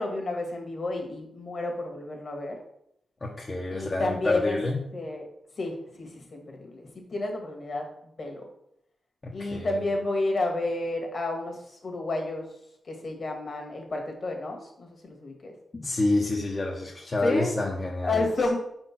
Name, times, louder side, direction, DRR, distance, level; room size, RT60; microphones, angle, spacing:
voice 1, 0.0-2.6 3.7-4.6 4.9-5.3 5.6-7.9 8.2-8.5 9.3-12.4 12.8-15.5 17.2-17.5 18.0-18.6, left 2 dB, 50° left, 3 dB, 1.7 m, -30 dB
voice 2, 3.2-4.8 9.2-9.8 11.9-12.0 15.7-18.3, left 2 dB, 35° left, -2 dB, 0.9 m, -28 dB
5.0 x 4.5 x 5.8 m, 0.75 s
wide cardioid pair, 115°, 0 cm